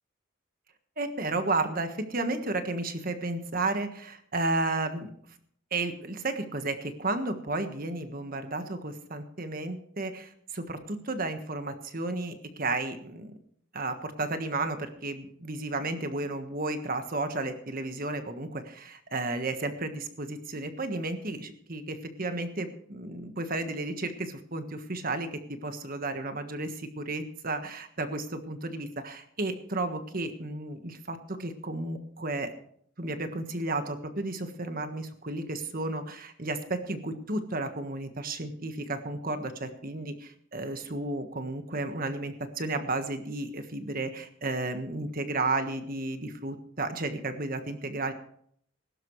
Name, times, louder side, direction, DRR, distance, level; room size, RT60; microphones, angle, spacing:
voice 1, 1.0-5.1 5.7-13.3 13.7-32.5 33.0-48.1, right 2 dB, 45° right, 8 dB, 1.4 m, -33 dB
20.5 x 12.0 x 3.2 m, 0.64 s
head